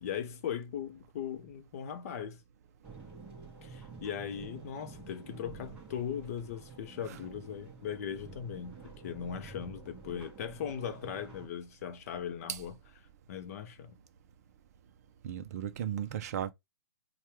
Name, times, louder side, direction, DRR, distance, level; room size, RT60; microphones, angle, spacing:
voice 1, 0.0-2.4 3.6-12.7 13.3-14.0, left 8 dB, 35° left, 0.6 m, -39 dB
sound 1, 2.8-11.5, right 4 dB, 10° right, 0.8 m, -49 dB
voice 2, 15.2-16.5, right 10 dB, 35° right, 0.5 m, -35 dB
4.4 x 2.2 x 3.0 m
hypercardioid pair, 160°, 14 cm